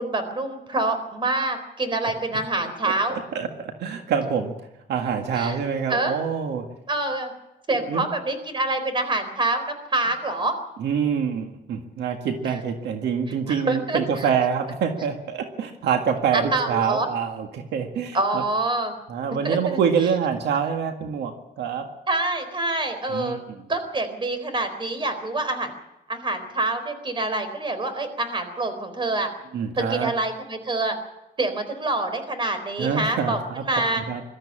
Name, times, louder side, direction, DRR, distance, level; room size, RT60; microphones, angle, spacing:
voice 1, 0.0-3.2 5.3-5.6 5.9-6.2 6.9-7.3 7.7-10.5 13.5-14.3 16.3-17.1 18.1-18.9 19.4-19.8 22.1-23.4 23.7-25.7 26.1-29.3 29.8-31.0 31.4-33.4 33.7-34.0, right 2 dB, 30° right, 9 dB, 4.0 m, -26 dB
voice 2, 2.8-4.5 4.9-6.7 7.9-8.1 10.8-18.4 19.1-21.9 23.1-23.4 29.5-30.1 32.8-33.6 34.0-34.2, right 7 dB, 85° right, 5 dB, 1.9 m, -26 dB
22.0 x 13.5 x 8.8 m, 0.92 s
cardioid pair, 120°, 17 cm